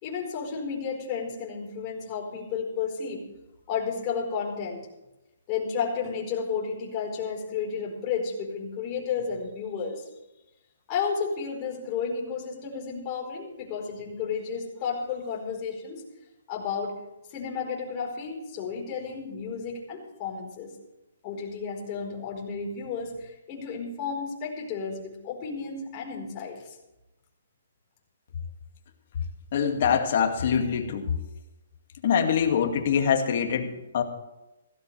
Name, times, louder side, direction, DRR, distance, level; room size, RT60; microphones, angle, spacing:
voice 1, 0.0-3.3 3.7-4.8 5.5-10.0 10.9-16.0 16.5-17.0 17.3-20.7 21.2-26.8, left 6 dB, 30° left, -1 dB, 4.5 m, -32 dB
voice 2, 29.5-31.1 32.0-34.0, left 7 dB, 50° left, 4 dB, 2.2 m, -24 dB
16.5 x 16.0 x 3.4 m, 0.96 s
hypercardioid pair, 155°, 0 cm